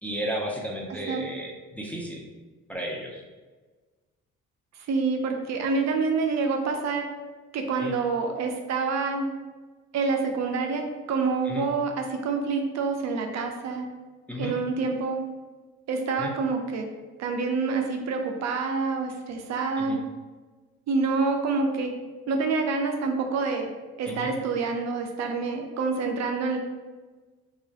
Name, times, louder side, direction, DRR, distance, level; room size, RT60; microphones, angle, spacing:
voice 1, 0.0-2.2 2.7-3.2 7.8-7.9 11.5-11.7 14.3-14.5 16.2-16.3 19.8-20.0 24.1-24.3, equal, 5° left, -1 dB, 0.4 m, -33 dB
voice 2, 0.9-1.2 4.9-7.1 7.5-9.3 9.9-13.9 14.4-15.2 15.9-16.9 17.2-20.0 20.9-21.9 22.3-23.7 24.0-26.6, right 4 dB, 60° right, 4 dB, 0.5 m, -27 dB
2.9 x 2.3 x 2.7 m, 1.3 s
cardioid pair, 90°, 30 cm